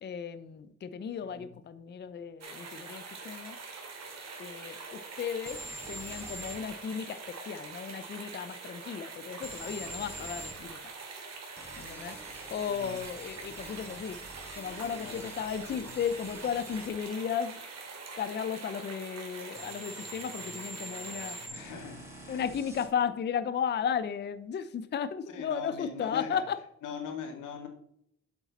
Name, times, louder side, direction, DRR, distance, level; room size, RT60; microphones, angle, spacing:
voice 1, 0.0-3.6 4.4-5.6 5.9-10.9 11.8-12.2 12.5-14.2 14.6-17.6 18.2-21.4 22.3-26.6, left 7 dB, 35° left, 11 dB, 0.5 m, -35 dB
sound 1, 2.4-21.5, right 4 dB, 60° right, 2.5 m, -44 dB
sound 2, 5.5-6.6 9.4-10.6 11.6-16.9 19.5-22.9, right 1 dB, 10° right, 4.0 m, -46 dB
voice 2, 12.7-13.0 14.8-15.3 15.6-15.9 21.5-22.4 25.3-26.5 26.8-27.7, left 7 dB, 85° left, 3 dB, 2.1 m, -41 dB
8.0 x 7.2 x 4.1 m, 0.72 s
cardioid pair, 90°, 30 cm